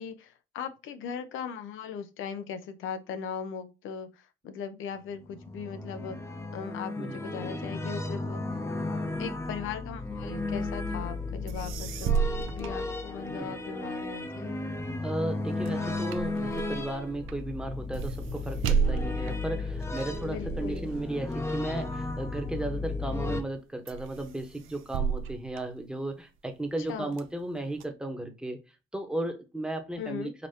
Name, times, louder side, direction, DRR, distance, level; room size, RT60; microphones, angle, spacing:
voice 1, 0.0-6.2 6.5-8.4 9.2-14.5 20.3-20.9 26.9-27.1 30.0-30.3, left 7 dB, 85° left, 0.7 m, -39 dB
sound 1, 5.1-23.4, left 3 dB, 15° left, 0.7 m, -34 dB
sound 2, 11.2-11.3 11.5-13.6 14.0-22.7 23.2-23.6 23.9-26.4 26.8-27.8, right 7 dB, 90° right, 0.5 m, -34 dB
voice 2, 15.0-28.6 28.9-30.3, right 1 dB, 5° right, 1.1 m, -35 dB
5.2 x 2.9 x 2.8 m
cardioid pair, 90°, 20 cm